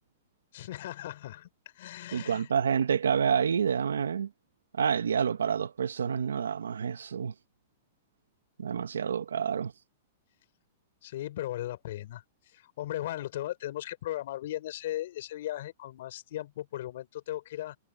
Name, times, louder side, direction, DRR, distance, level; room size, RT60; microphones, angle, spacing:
voice 1, 0.5-1.5 1.7-2.5 11.0-17.8, left 14 dB, 65° left, 5.1 m, -37 dB
voice 2, 2.1-4.3 4.7-7.3 8.6-9.7, right 7 dB, 90° right, 1.2 m, -28 dB
hypercardioid pair, 125°, 0 cm